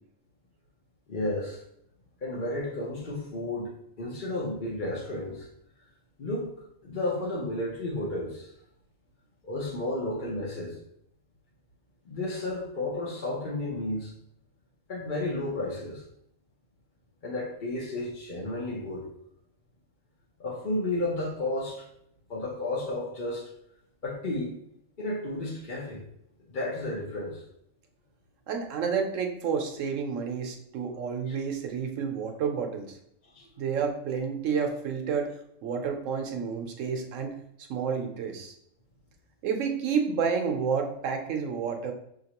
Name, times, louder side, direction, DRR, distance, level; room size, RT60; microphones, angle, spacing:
voice 1, 1.1-1.6 2.2-3.7 4.0-5.5 6.2-6.5 6.8-8.5 9.4-10.8 12.0-14.1 14.9-16.0 17.2-19.1 20.4-21.8 22.3-23.5 24.0-24.5 25.0-26.0 26.5-27.4 31.3-31.4 33.3-33.5, left 2 dB, 45° left, -5 dB, 0.9 m, -32 dB
voice 2, 28.5-33.0 33.6-35.3 35.6-37.4 37.7-38.5 39.4-41.9, right 6 dB, 75° right, 3 dB, 1.1 m, -30 dB
6.0 x 2.8 x 2.9 m, 0.74 s
omnidirectional pair, 1.3 m